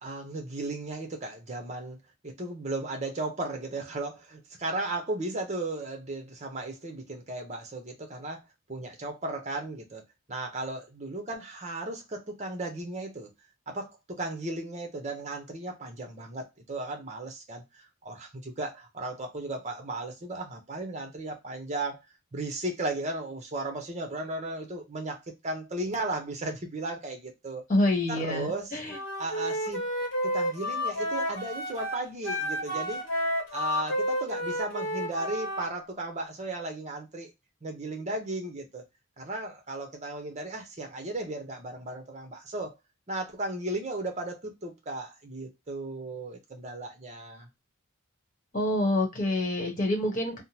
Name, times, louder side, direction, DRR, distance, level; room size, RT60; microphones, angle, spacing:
voice 1, 0.0-2.0 2.2-8.4 8.7-10.0 10.3-13.3 13.7-22.0 22.3-27.6 28.1-28.8 29.2-29.8 30.2-33.0 33.5-37.3 37.6-38.8 39.2-42.7 43.1-47.5, right 2 dB, 30° right, 0.8 m, -35 dB
voice 2, 27.7-29.0 48.5-50.4, left 1 dB, 35° left, 1.2 m, -27 dB
Wind instrument woodwind instrument, 28.9-35.7, equal, 55° left, 1.0 m, -31 dB
3.5 x 2.1 x 2.8 m
head